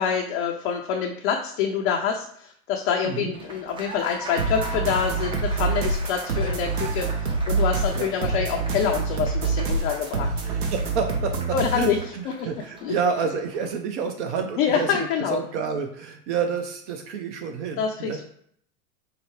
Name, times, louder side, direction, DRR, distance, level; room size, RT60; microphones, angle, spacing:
voice 1, 0.0-10.3 11.5-12.0 12.4-12.5 12.8-12.9 14.6-15.4 17.8-18.2, left 7 dB, 50° left, 1 dB, 0.6 m, -26 dB
voice 2, 3.0-3.4 7.9-8.1 10.2-18.2, right 6 dB, 50° right, 4 dB, 0.6 m, -29 dB
Applause, 3.3-13.7, right 1 dB, 10° right, 0.5 m, -40 dB
sound 1, 4.4-12.0, right 3 dB, 80° right, 0.9 m, -26 dB
4.7 x 2.0 x 3.1 m, 0.66 s
hypercardioid pair, 95°, 44 cm